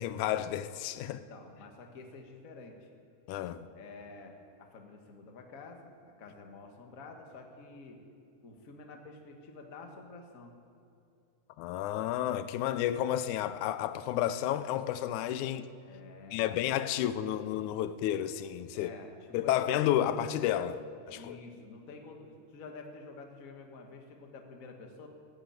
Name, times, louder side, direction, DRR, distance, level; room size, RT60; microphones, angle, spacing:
voice 1, 0.0-1.2 3.3-3.7 11.6-15.7 16.3-18.9 19.3-20.8 21.1-21.4, left 11 dB, 90° left, 2.1 m, -31 dB
voice 2, 1.0-2.9 3.7-8.0 8.4-10.6 15.9-16.5 18.7-19.1 19.4-19.8 21.1-25.1, left 3 dB, 40° left, 1.3 m, -49 dB
16.0 x 9.0 x 8.9 m
omnidirectional pair, 3.4 m